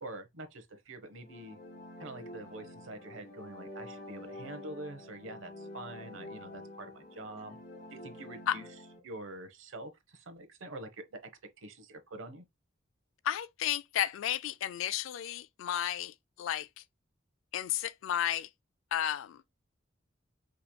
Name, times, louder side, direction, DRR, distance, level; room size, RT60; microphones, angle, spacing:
voice 1, 0.0-1.6 2.0-7.6 7.9-8.6 9.0-11.2 11.6-12.4, right 2 dB, 75° right, 0.9 m, -45 dB
sound 1, 1.1-9.0, left 1 dB, 55° left, 1.1 m, -48 dB
voice 2, 13.2-16.8 17.5-18.5 18.9-19.4, left 10 dB, 75° left, 0.3 m, -33 dB
5.0 x 3.0 x 2.2 m
head